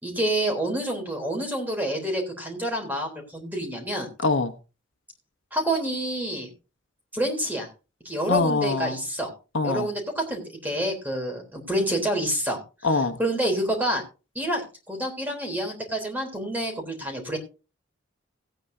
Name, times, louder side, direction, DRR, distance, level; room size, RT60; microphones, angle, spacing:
voice 1, 0.0-4.1 5.5-6.5 7.1-7.7 8.1-9.3 9.6-12.6 13.2-14.0 14.4-17.4, right 1 dB, 10° right, 3.5 m, -28 dB
voice 2, 4.2-4.5 8.3-9.0 9.5-9.9 12.8-13.2, left 3 dB, 75° left, 1.1 m, -23 dB
17.5 x 9.3 x 2.7 m
head